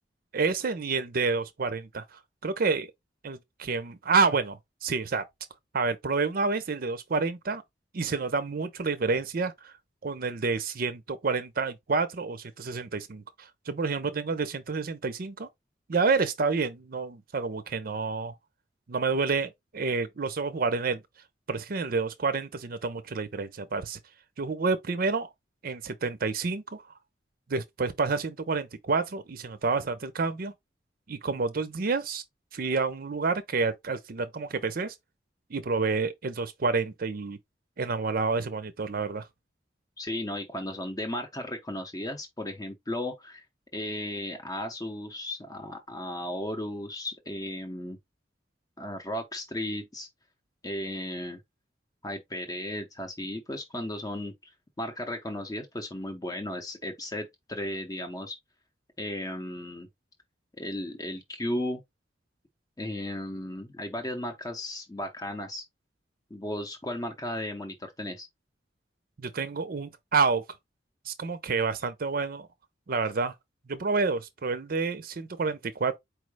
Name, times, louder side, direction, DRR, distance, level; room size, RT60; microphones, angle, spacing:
voice 1, 0.3-2.9 3.2-5.2 5.7-7.6 7.9-9.7 10.0-15.5 15.9-18.3 18.9-21.0 21.5-24.0 24.4-25.3 25.6-26.8 27.5-30.5 31.1-32.2 32.5-34.9 35.5-37.4 37.8-39.3 69.2-70.4 71.1-72.5 72.9-73.3 73.7-76.0, right 4 dB, 55° right, 0.6 m, -29 dB
voice 2, 40.0-43.4 43.7-48.0 48.8-50.1 50.6-51.4 52.0-54.5 54.8-58.4 59.0-59.9 60.6-61.8 62.8-65.6 66.3-68.3, left 1 dB, 20° left, 0.7 m, -35 dB
4.6 x 2.0 x 4.7 m
head